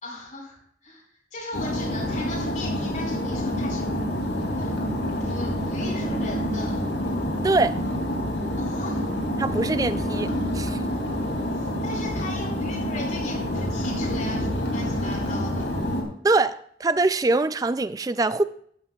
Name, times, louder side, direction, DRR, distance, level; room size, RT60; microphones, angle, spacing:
voice 1, 0.0-4.8 5.2-6.8 8.6-9.0 11.5-15.7, left 2 dB, 45° left, 5.0 m, -38 dB
sound 1, 1.5-16.0, equal, 90° left, 2.6 m, -27 dB
voice 2, 7.4-7.8 9.4-10.8 16.2-18.4, right 3 dB, 20° right, 0.3 m, -23 dB
15.0 x 11.5 x 2.4 m
head